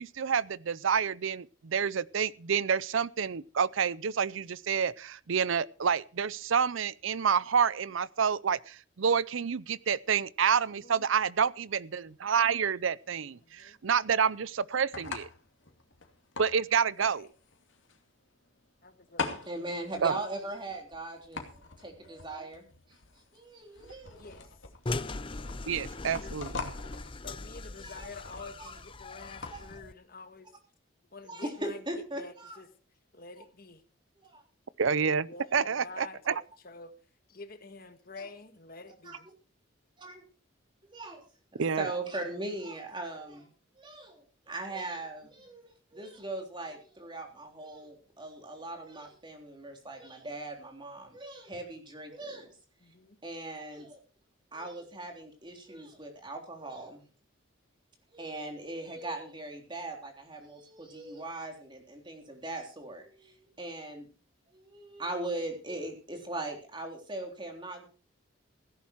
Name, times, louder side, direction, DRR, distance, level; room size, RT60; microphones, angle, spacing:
voice 1, 0.0-15.3 16.4-17.3 20.0-20.2 25.7-26.5 34.8-36.3 41.6-41.9, right 6 dB, 75° right, 0.6 m, -28 dB
voice 2, 10.6-11.1 13.4-13.8 17.0-17.3 18.8-19.5 24.1-24.5 26.0-26.4 27.2-30.5 31.1-31.8 32.2-32.7 33.1-33.8 35.3-36.9 37.3-39.3 52.8-53.2, left 3 dB, 45° left, 1.6 m, -48 dB
sound 1, 12.0-29.8, left 4 dB, 70° left, 2.5 m, -44 dB
voice 3, 19.5-22.7 23.3-24.3 27.8-28.1 28.6-28.7 29.4-29.6 31.2-32.6 34.2-34.4 35.4-35.6 38.1-38.3 39.1-39.2 40.0-40.2 40.9-41.2 41.5-43.5 43.8-52.6 53.2-54.0 54.5-57.0 58.1-64.1 64.5-67.8, right 2 dB, 25° right, 3.6 m, -40 dB
sound 2, 24.9-29.9, left 3 dB, 25° left, 0.6 m, -40 dB
16.0 x 11.0 x 4.6 m
head